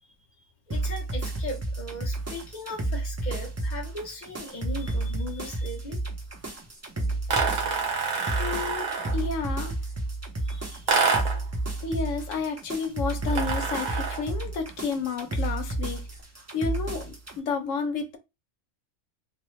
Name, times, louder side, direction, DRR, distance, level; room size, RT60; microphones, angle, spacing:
voice 1, 0.0-6.0 8.2-8.5 10.4-10.9, left 1 dB, 40° left, 0.9 m, -39 dB
sound 1, 0.7-17.4, right 2 dB, 25° right, 0.3 m, -31 dB
sound 2, 7.3-9.3 10.9-11.5 13.3-14.3, right 5 dB, 80° right, 1.2 m, -27 dB
voice 2, 8.4-9.8 11.8-16.0 16.5-18.2, left 5 dB, 85° left, 1.1 m, -31 dB
3.1 x 2.0 x 3.1 m
omnidirectional pair, 1.3 m